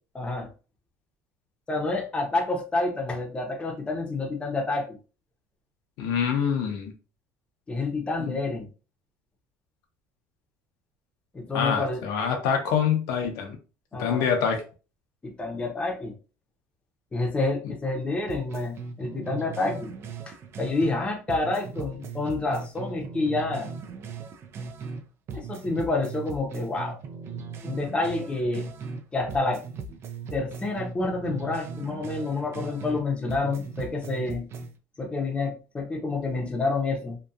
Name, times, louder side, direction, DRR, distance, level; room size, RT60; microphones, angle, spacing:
voice 1, 0.1-0.5 1.7-4.9 7.7-8.7 11.3-12.0 13.9-14.3 15.2-16.2 17.1-19.9 20.3-23.7 25.3-27.0 27.6-29.6 30.3-34.5 35.0-37.2, left 3 dB, 15° left, 1 dB, 0.7 m, -28 dB
voice 2, 6.0-6.9 8.2-8.4 11.5-13.6 14.0-14.6, left 7 dB, 75° left, 3 dB, 0.6 m, -25 dB
sound 1, 18.3-21.0 21.3-25.0 25.3-29.0 29.3-33.0 33.3-34.7, right 5 dB, 40° right, 0.4 m, -38 dB
2.7 x 2.3 x 2.3 m, 0.34 s
cardioid pair, 130°, 6 cm